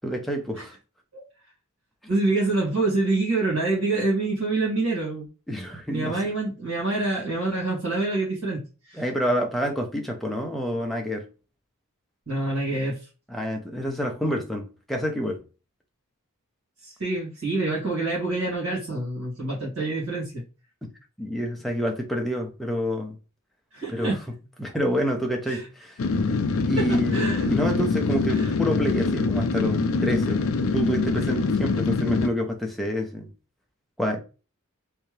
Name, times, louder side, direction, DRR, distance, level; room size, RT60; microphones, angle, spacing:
voice 1, 0.0-0.7 5.5-6.3 8.9-11.3 13.3-15.4 21.2-23.2 23.9-24.2 24.6-26.0 26.6-33.3 34.0-34.2, equal, ahead, 0.6 m, -28 dB
voice 2, 2.1-5.3 5.9-9.0 12.3-13.0 16.8-20.4 23.7-24.2 25.5-25.6 26.8-27.5 28.3-28.5, right 2 dB, 70° right, 2.0 m, -26 dB
sound 1, 26.0-32.3, left 4 dB, 70° left, 0.4 m, -24 dB
3.4 x 2.8 x 3.2 m
head